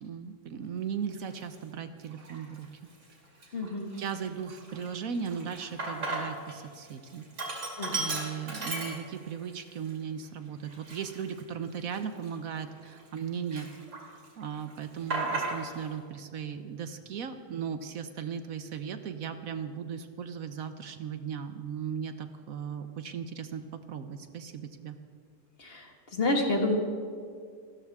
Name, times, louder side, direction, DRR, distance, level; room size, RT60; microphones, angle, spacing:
voice 1, 0.0-2.7 3.4-3.6 4.0-13.7 14.0-25.0, right 7 dB, 65° right, 9 dB, 1.2 m, -37 dB
Sink (filling or washing), 1.3-1.4 2.1-2.6 3.0-3.1 3.4-6.6 6.9-9.4 9.9-10.0 10.6-13.2 13.5-14.3 14.5-15.9, right 2 dB, 50° right, 2.9 m, -36 dB
voice 2, 3.5-3.9 7.8-8.0 25.6-26.8, left 2 dB, 40° left, 2 dB, 1.9 m, -29 dB
28.0 x 13.0 x 3.6 m, 2.2 s
omnidirectional pair, 1.6 m